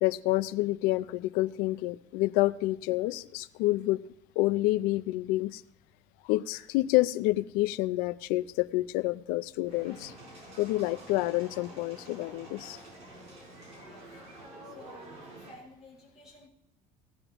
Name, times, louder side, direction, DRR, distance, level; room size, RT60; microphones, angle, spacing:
voice 1, 0.0-4.0 4.4-5.6 6.3-10.1 10.6-12.8, left 18 dB, 90° left, 15 dB, 0.5 m, -28 dB
sound 1, 9.6-15.5, right 1 dB, 45° right, 5.5 m, -48 dB
voice 2, 13.7-14.0 14.6-15.2 15.5-16.5, left 1 dB, 5° right, -6 dB, 5.8 m, -53 dB
17.5 x 10.0 x 3.0 m, 0.80 s
cardioid pair, 160°, 15 cm